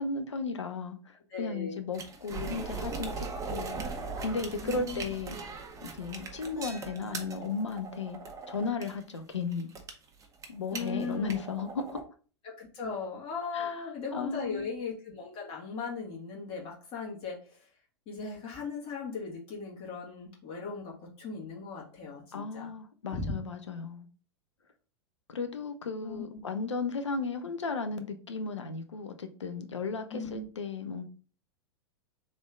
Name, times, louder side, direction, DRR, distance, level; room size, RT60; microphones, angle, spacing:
voice 1, 0.0-3.9 4.2-5.4 6.0-8.2 8.5-9.7 10.5-12.0 13.5-13.8 14.1-14.7 22.3-24.1 25.3-31.0, left 4 dB, 90° left, 0.7 m, -35 dB
voice 2, 1.3-1.8 4.6-5.1 10.7-11.4 12.4-17.6 18.1-22.7 23.1-23.3 26.0-26.4 30.1-30.5, left 5 dB, 40° left, 2.0 m, -38 dB
sound 1, 1.9-12.0, right 4 dB, 20° right, 0.8 m, -40 dB
3.5 x 3.2 x 3.6 m
hypercardioid pair, 100°, 15 cm